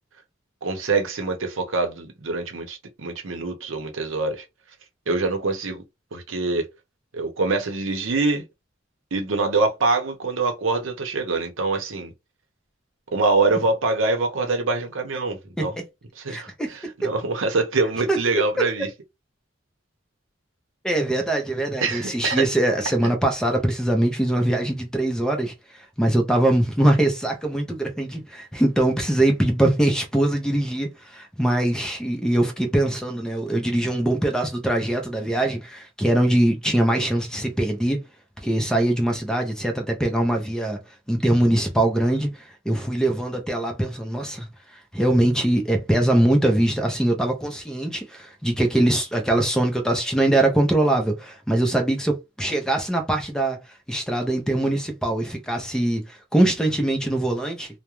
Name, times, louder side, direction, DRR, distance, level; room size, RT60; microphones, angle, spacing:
voice 1, 0.6-4.4 5.1-5.8 6.1-6.7 7.1-8.4 9.1-12.1 13.1-15.8 16.2-18.9 21.8-22.4, right 3 dB, 75° right, 0.7 m, -24 dB
voice 2, 16.3-16.7 18.1-18.2 18.6-18.7 20.8-25.5 26.0-38.0 38.4-40.8 41.1-42.3 42.7-44.5 44.9-53.6 53.9-57.7, right 1 dB, 5° left, 0.5 m, -22 dB
2.4 x 2.1 x 3.0 m
head